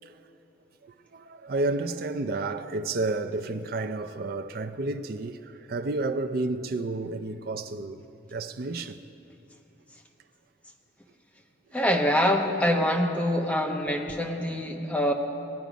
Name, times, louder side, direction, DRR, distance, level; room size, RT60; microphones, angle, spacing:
voice 1, 0.8-9.0, right 2 dB, 55° right, 0.5 m, -31 dB
voice 2, 11.7-15.1, equal, 5° left, 0.9 m, -25 dB
18.5 x 9.4 x 5.1 m
head